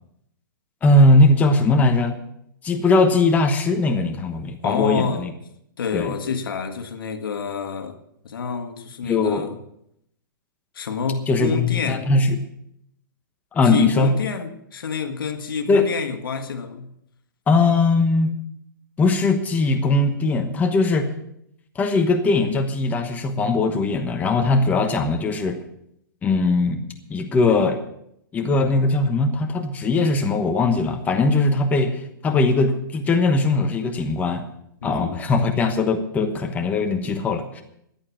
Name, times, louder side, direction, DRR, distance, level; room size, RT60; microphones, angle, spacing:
voice 1, 0.8-2.2 2.6-5.3 5.9-6.2 9.0-9.4 11.3-12.4 13.5-14.1 15.7-15.9 17.5-18.3 19.0-21.1 21.7-25.6 26.2-26.8 27.1-27.8 28.3-34.4 34.8-37.6, left 3 dB, 15° left, 1.1 m, -20 dB
voice 2, 4.6-5.3 5.8-8.0 8.2-9.6 10.8-12.1 13.7-16.9 34.8-35.2, left 5 dB, 80° left, 1.8 m, -28 dB
14.0 x 9.9 x 6.0 m
hypercardioid pair, 150°, 12 cm